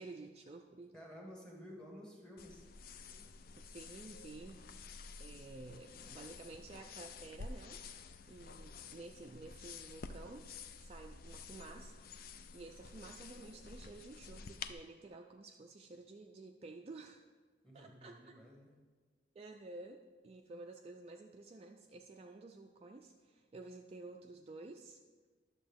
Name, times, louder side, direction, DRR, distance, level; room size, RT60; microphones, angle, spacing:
voice 1, 0.0-0.9 3.6-4.7 5.2-7.8 8.3-10.5 10.8-11.9 12.5-17.2 17.7-18.3 19.3-25.0, right 2 dB, 35° right, 3 dB, 0.4 m, -52 dB
voice 2, 0.9-2.7 17.6-18.7, equal, 5° left, -1 dB, 1.5 m, -53 dB
sound 1, 2.4-14.7, left 4 dB, 50° left, 0.4 m, -51 dB
11.0 x 6.8 x 3.5 m, 1.4 s
head